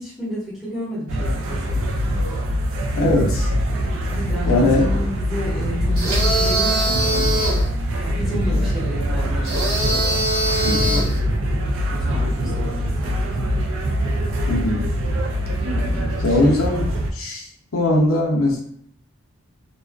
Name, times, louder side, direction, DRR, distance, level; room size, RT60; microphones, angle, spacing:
voice 1, 0.0-1.9 4.1-7.3 8.0-11.2 11.9-13.5 15.6-16.7, equal, ahead, -10 dB, 1.1 m, -32 dB
sound 1, 1.1-17.1, equal, 70° right, 0.3 m, -23 dB
voice 2, 2.9-3.5 4.5-4.9 8.3-8.6 10.6-11.1 14.5-14.9 16.2-17.5 17.7-18.6, left 2 dB, 80° left, -2 dB, 0.6 m, -20 dB
sound 2, 6.0-7.7 9.4-11.2, right 1 dB, 85° right, 0.9 m, -22 dB
2.3 x 2.3 x 2.3 m, 0.67 s
head